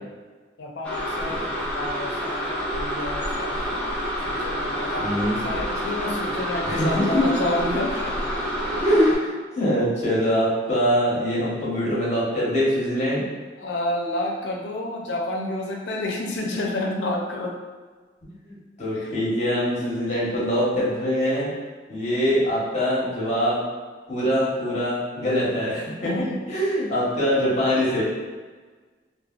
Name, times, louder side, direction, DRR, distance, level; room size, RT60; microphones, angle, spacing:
voice 1, 0.6-3.8 4.2-8.1 8.7-8.8 13.6-17.5 19.0-19.1 26.0-26.4, left 1 dB, 80° left, 0 dB, 0.5 m, -30 dB
sound 1, 0.8-9.2, equal, 5° left, 0.5 m, -28 dB
voice 2, 5.0-5.4 6.6-7.3 8.8-13.2 18.4-21.5 21.9-23.6 24.1-28.0, equal, 40° left, -7 dB, 1.1 m, -23 dB
3.2 x 2.1 x 2.3 m, 1.4 s
head